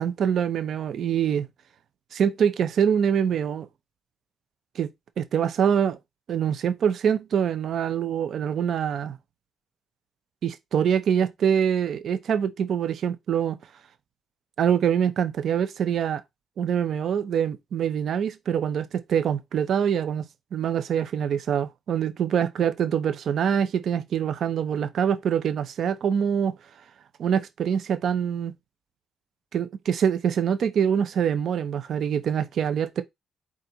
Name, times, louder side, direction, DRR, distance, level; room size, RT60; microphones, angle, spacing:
voice 1, 0.0-1.5 2.1-3.7 4.8-4.9 5.2-6.0 6.3-9.2 10.4-13.6 14.6-16.2 16.6-26.5 27.2-28.5 29.5-33.0, right 8 dB, 65° right, 0.6 m, -24 dB
4.2 x 2.5 x 3.9 m
cardioid pair, 90°, 0 cm